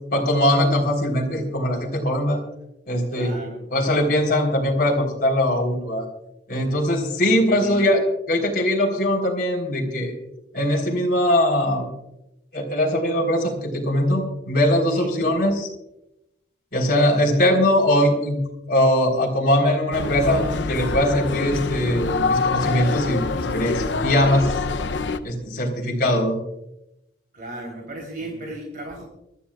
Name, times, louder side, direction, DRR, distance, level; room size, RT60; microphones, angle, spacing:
voice 1, 0.1-2.4 2.9-3.3 3.7-6.1 6.5-8.0 8.3-10.1 10.5-11.9 12.5-15.7 16.7-18.4 18.7-24.5 25.2-26.4, left 1 dB, 55° left, 1 dB, 3.9 m, -21 dB
voice 2, 3.1-3.6 7.2-7.8 14.9-15.1 27.3-29.0, right 2 dB, 50° right, -1 dB, 3.5 m, -35 dB
sound 1, 19.9-25.2, left 4 dB, 80° left, 0.7 m, -25 dB
25.5 x 13.5 x 2.4 m, 0.88 s
head